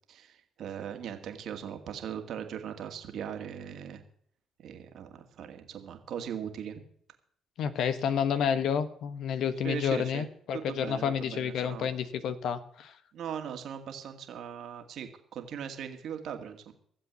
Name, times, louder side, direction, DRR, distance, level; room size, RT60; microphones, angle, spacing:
voice 1, 0.1-4.0 4.6-6.8 9.6-10.2 10.5-11.9 13.1-16.7, right 8 dB, 65° right, 6 dB, 2.1 m, -39 dB
voice 2, 7.6-13.0, left 7 dB, 70° left, 12 dB, 1.1 m, -30 dB
16.0 x 7.7 x 8.1 m, 0.63 s
supercardioid pair, 55°, 0 cm